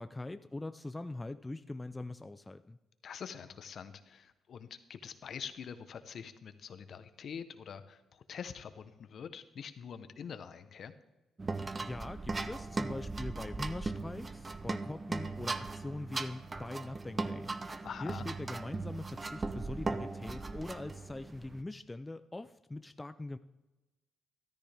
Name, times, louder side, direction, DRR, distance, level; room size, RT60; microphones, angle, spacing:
voice 1, 0.0-2.8 11.6-23.4, left 2 dB, 15° left, 11 dB, 0.4 m, -42 dB
voice 2, 3.0-10.9 17.8-18.3, left 7 dB, 60° left, 11 dB, 0.9 m, -45 dB
sound 1, 11.4-21.6, right 3 dB, 25° right, 0.7 m, -38 dB
13.5 x 13.0 x 3.5 m, 1.1 s
cardioid pair, 90°, 0 cm